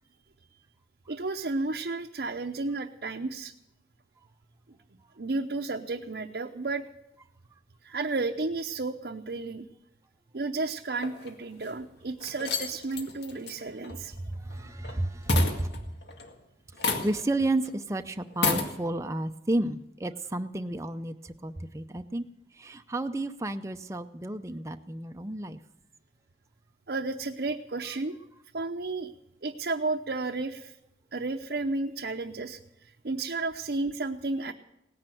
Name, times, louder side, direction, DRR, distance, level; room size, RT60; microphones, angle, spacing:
voice 1, 1.1-3.5 5.2-6.8 7.8-9.7 10.3-14.2 26.9-28.2 28.5-29.1 29.4-30.7 31.1-34.5, right 3 dB, 65° right, 0.7 m, -32 dB
sound 1, 11.0-11.7 12.2-15.0 15.3-16.3 16.8-17.4 17.6-17.7 18.3-18.7, left 4 dB, 80° left, 2.0 m, -31 dB
voice 2, 14.2-15.8 17.0-22.2 22.6-25.6, right 1 dB, 15° right, 0.6 m, -31 dB
18.0 x 10.5 x 7.7 m
head